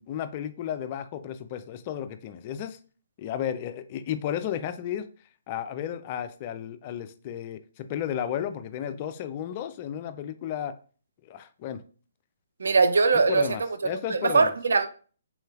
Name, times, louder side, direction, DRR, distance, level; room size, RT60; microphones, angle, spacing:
voice 1, 0.0-2.8 3.2-5.1 5.5-10.7 11.2-11.8 13.3-14.5, left 10 dB, 35° left, 0.3 m, -33 dB
voice 2, 12.6-13.5 14.1-14.9, right 4 dB, 70° right, 0.4 m, -21 dB
3.7 x 3.1 x 2.3 m
figure-of-eight pair, 135°, 0 cm